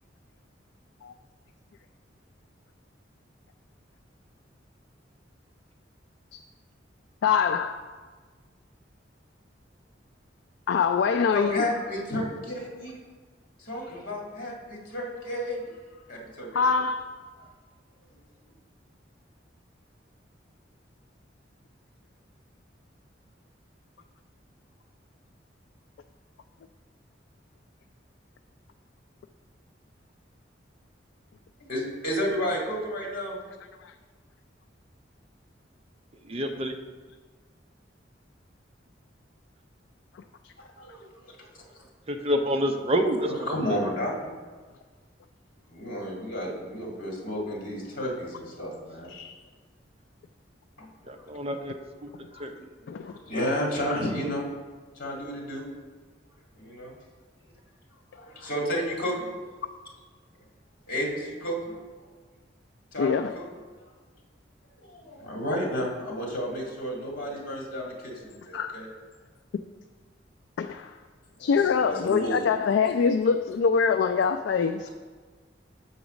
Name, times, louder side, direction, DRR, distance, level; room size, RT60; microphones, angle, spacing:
voice 1, 7.2-7.8 10.7-11.6 16.5-17.1 33.8-33.9 40.4-40.5 49.1-49.4 52.9-53.1 63.0-63.4 68.5-68.8 70.6-70.9 71.4-74.9, left 6 dB, 70° left, 7 dB, 0.3 m, -24 dB
voice 2, 11.3-12.9 13.6-15.7 16.1-16.6 31.7-33.4 40.6-41.3 43.5-44.3 45.7-49.1 50.8-51.2 52.3-54.5 55.0-55.6 56.6-56.9 58.1-59.3 60.9-61.6 62.9-63.4 64.8-68.9 71.4-72.4, equal, 50° left, -2 dB, 1.9 m, -32 dB
voice 3, 36.2-36.8 42.1-43.8 51.1-51.8 52.0-52.1 52.4-52.5, equal, 30° right, 5 dB, 0.6 m, -28 dB
6.9 x 4.0 x 6.2 m, 1.4 s
head